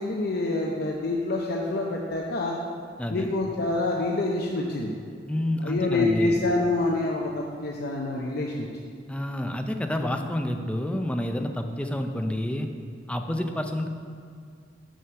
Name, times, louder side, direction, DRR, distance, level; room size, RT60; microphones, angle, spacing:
voice 1, 0.0-2.6 3.1-4.9 5.6-8.9, left 2 dB, 55° left, -1 dB, 0.7 m, -27 dB
voice 2, 5.3-6.4 9.1-12.7 13.1-13.9, left 1 dB, 5° left, 5 dB, 0.5 m, -29 dB
6.4 x 6.3 x 6.8 m, 2.2 s
head